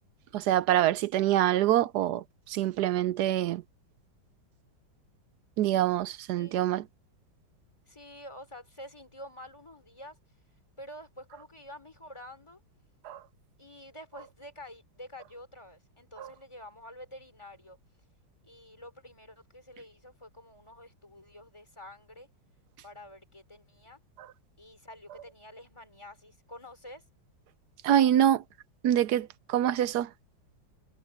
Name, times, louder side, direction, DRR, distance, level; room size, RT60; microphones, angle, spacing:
voice 1, 0.3-3.6 5.6-6.8 13.0-13.2 16.2-16.3 27.8-28.4 28.8-30.1, right 12 dB, 70° right, 1.0 m, -25 dB
voice 2, 6.4-6.7 7.9-10.2 10.8-12.6 13.6-17.8 18.4-22.3 22.8-24.0 24.6-27.0, left 1 dB, 15° left, 3.3 m, -48 dB
omnidirectional pair, 2.1 m